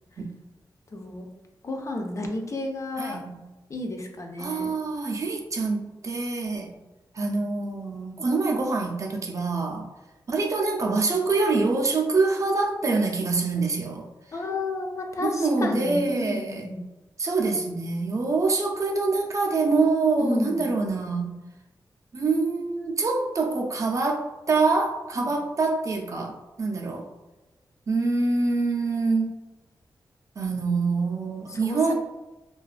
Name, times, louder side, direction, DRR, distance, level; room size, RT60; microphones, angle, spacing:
voice 1, 0.9-1.3 1.6-3.2 3.7-4.7 14.3-16.9 20.2-20.7 25.2-25.3 31.5-31.9, left 2 dB, 40° left, 2 dB, 0.4 m, -31 dB
voice 2, 3.0-3.4 4.4-6.7 7.1-9.9 10.3-14.1 15.2-16.7 17.2-21.4 22.1-27.1 27.9-29.4 30.4-31.9, right 3 dB, 40° right, 1 dB, 0.4 m, -25 dB
2.4 x 2.2 x 2.3 m, 1.1 s
wide cardioid pair, 120°, 8 cm